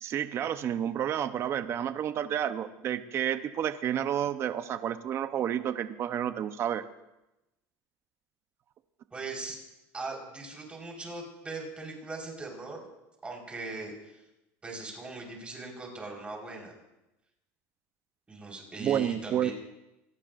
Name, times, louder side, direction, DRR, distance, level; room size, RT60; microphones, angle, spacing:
voice 1, 0.0-6.8 18.8-19.5, right 10 dB, 40° right, 10 dB, 0.8 m, -30 dB
voice 2, 9.1-9.6 9.9-12.9 13.2-14.2 14.6-16.7 18.3-19.5, right 3 dB, 15° right, -1 dB, 4.6 m, -40 dB
26.5 x 17.5 x 2.6 m, 0.94 s
supercardioid pair, 135°, 7 cm